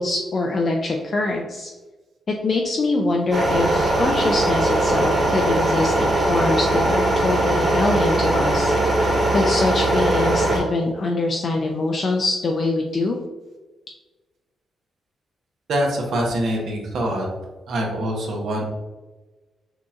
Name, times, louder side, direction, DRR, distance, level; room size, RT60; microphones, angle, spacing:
voice 1, 0.0-1.7 2.4-8.7 9.3-13.2, left 2 dB, 35° left, 1 dB, 0.4 m, -24 dB
sound 1, 3.3-10.6, right 1 dB, 20° right, 1.5 m, -20 dB
voice 2, 15.7-17.3 17.7-18.6, right 1 dB, 60° right, 0 dB, 1.0 m, -24 dB
6.1 x 2.9 x 2.4 m, 1.2 s
wide cardioid pair, 170°, 0 cm